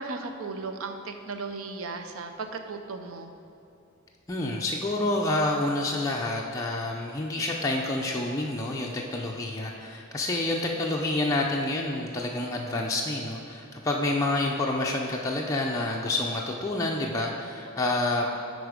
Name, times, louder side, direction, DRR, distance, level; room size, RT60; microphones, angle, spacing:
voice 1, 0.0-3.3, right 3 dB, 70° right, 6 dB, 0.6 m, -36 dB
voice 2, 4.3-18.3, left 2 dB, 15° left, -2 dB, 0.4 m, -28 dB
9.5 x 4.0 x 5.0 m, 2.8 s
head